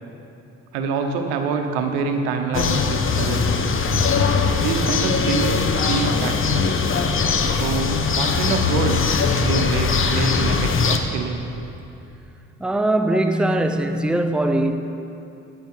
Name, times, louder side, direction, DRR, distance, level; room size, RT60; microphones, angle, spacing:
voice 1, 0.7-3.6 4.6-6.7 7.5-9.0 9.4-11.4, right 5 dB, 90° right, 5 dB, 0.9 m, -26 dB
sound 1, 2.5-11.0, left 5 dB, 40° left, 0.9 m, -20 dB
voice 2, 12.6-14.8, right 1 dB, 5° right, 6 dB, 0.7 m, -21 dB
9.4 x 8.1 x 6.0 m, 2.7 s
supercardioid pair, 65°, 31 cm